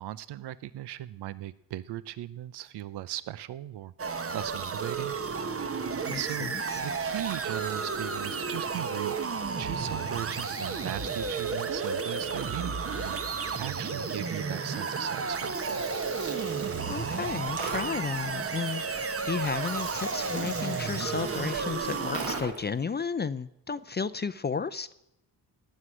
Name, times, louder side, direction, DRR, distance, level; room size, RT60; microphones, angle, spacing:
voice 1, 0.0-3.9 4.3-5.2 6.1-9.2 9.6-15.8, right 13 dB, 80° right, 17 dB, 0.6 m, -38 dB
sound 1, 4.0-22.4, right 5 dB, 35° right, 1.1 m, -32 dB
voice 2, 6.1-6.5 16.9-24.9, left 5 dB, 25° left, 14 dB, 0.5 m, -33 dB
Gurgling, 15.3-22.8, right 3 dB, 60° right, 3.8 m, -42 dB
17.5 x 6.4 x 9.6 m, 0.82 s
cardioid pair, 105°, 39 cm